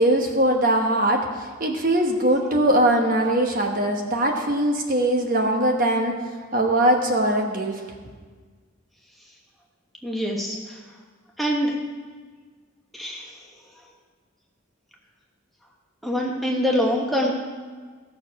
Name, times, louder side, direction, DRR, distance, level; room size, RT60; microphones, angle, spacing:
voice 1, 0.0-6.1 6.5-7.8, right 1 dB, 40° right, 2 dB, 1.2 m, -21 dB
voice 2, 10.0-10.8 11.4-11.7 12.9-13.3 16.0-17.3, equal, ahead, -2 dB, 1.1 m, -24 dB
15.0 x 6.7 x 5.8 m, 1.5 s
head